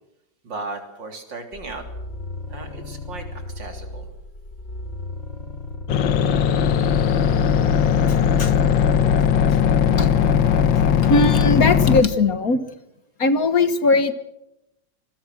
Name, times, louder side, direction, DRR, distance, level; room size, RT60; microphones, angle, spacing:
voice 1, 0.4-1.8 2.5-4.1, right 3 dB, 75° right, 5 dB, 4.1 m, -36 dB
sound 1, 1.5-12.2, left 2 dB, 30° left, 2.5 m, -35 dB
sound 2, 5.9-12.0, left 8 dB, 80° left, 1.8 m, -18 dB
voice 2, 11.1-12.6 13.2-14.1, left 3 dB, 50° left, 11 dB, 1.8 m, -19 dB
26.5 x 21.0 x 6.3 m, 0.87 s
omnidirectional pair, 2.0 m